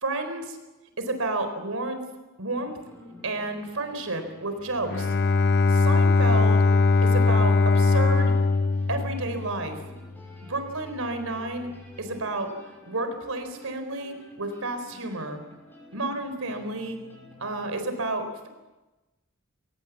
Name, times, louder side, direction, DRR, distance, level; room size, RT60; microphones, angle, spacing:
voice 1, 0.0-0.6 1.0-2.0 2.4-2.8 3.2-5.1 5.7-6.6 7.0-8.4 8.9-9.8 10.5-11.7 12.0-12.5 12.8-15.4 15.9-17.0 17.4-18.5, right 2 dB, 80° right, 8 dB, 4.2 m, -31 dB
sound 1, 2.5-17.7, left 1 dB, 10° left, 6.6 m, -50 dB
Bowed string instrument, 4.8-9.8, left 3 dB, 50° left, 0.8 m, -21 dB
23.5 x 19.5 x 7.4 m, 1.1 s
head